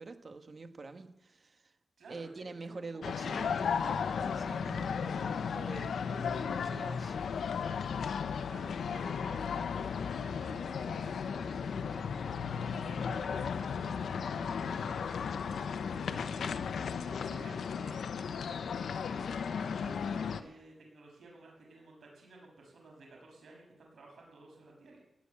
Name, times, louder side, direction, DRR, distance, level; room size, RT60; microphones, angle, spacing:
voice 1, 0.0-1.8 2.1-7.2, right 3 dB, 40° right, 8 dB, 1.4 m, -46 dB
voice 2, 2.0-3.0 8.2-12.2 12.8-14.5 16.1-18.0 18.4-25.0, right 2 dB, 80° right, -1 dB, 6.8 m, -54 dB
sound 1, 3.0-20.4, left 6 dB, 85° left, 0.8 m, -35 dB
18.0 x 7.0 x 9.8 m, 0.82 s
wide cardioid pair, 150°, 0 cm